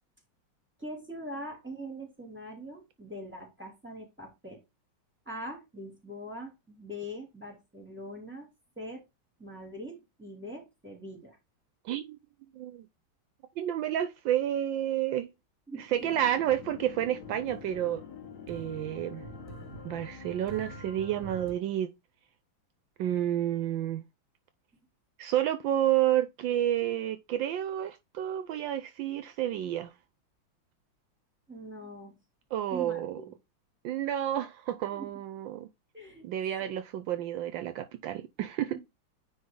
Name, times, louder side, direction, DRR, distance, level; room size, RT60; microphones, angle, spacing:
voice 1, 0.8-4.6 5.3-8.5 8.8-9.0 9.4-11.4 15.7-16.0 31.5-32.2 32.7-33.3 34.9-35.1 35.9-36.3 36.6-36.7, equal, 5° right, 2.8 m, -42 dB
voice 2, 11.8-12.2 12.5-12.9 13.6-15.3 15.9-18.0 18.5-19.2 19.8-21.9 23.0-24.0 25.2-29.9 32.5-33.2 33.8-35.7 36.2-38.8, right 11 dB, 75° right, 1.3 m, -30 dB
sound 1, 15.9-21.5, right 3 dB, 40° right, 1.1 m, -47 dB
sound 2, 16.0-21.7, left 9 dB, 55° left, 1.6 m, -47 dB
9.6 x 3.7 x 3.8 m
omnidirectional pair, 2.2 m